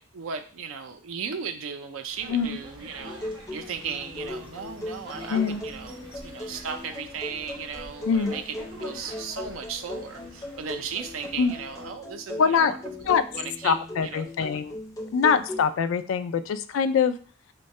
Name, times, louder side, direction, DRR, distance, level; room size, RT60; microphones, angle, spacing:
voice 1, 0.0-3.2 3.5-12.8 13.0-13.8 14.0-14.6, right 6 dB, 90° right, 7 dB, 0.5 m, -36 dB
sound 1, 2.1-11.9, equal, 25° right, 0.9 m, -47 dB
sound 2, 3.0-15.6, left 1 dB, 15° left, 0.5 m, -38 dB
voice 2, 5.3-5.6 8.1-8.3 11.4-11.5 12.4-12.7 13.1-13.2 13.6-14.8 15.1-17.2, left 6 dB, 80° left, 12 dB, 0.3 m, -23 dB
3.5 x 2.2 x 4.0 m, 0.41 s
head